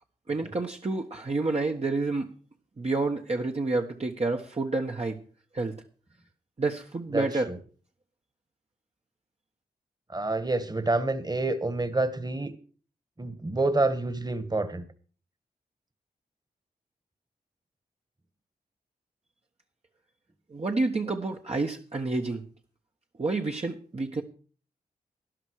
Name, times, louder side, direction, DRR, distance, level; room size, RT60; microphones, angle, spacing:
voice 1, 0.3-2.3 2.8-5.2 5.5-5.7 6.6-7.5 20.5-22.4 23.2-24.2, right 3 dB, 40° right, 1 dB, 1.4 m, -29 dB
voice 2, 7.1-7.6 10.1-12.5 13.2-14.8, right 2 dB, 25° right, 11 dB, 1.7 m, -28 dB
12.5 x 11.0 x 4.8 m, 0.40 s
cardioid pair, 45°, 17 cm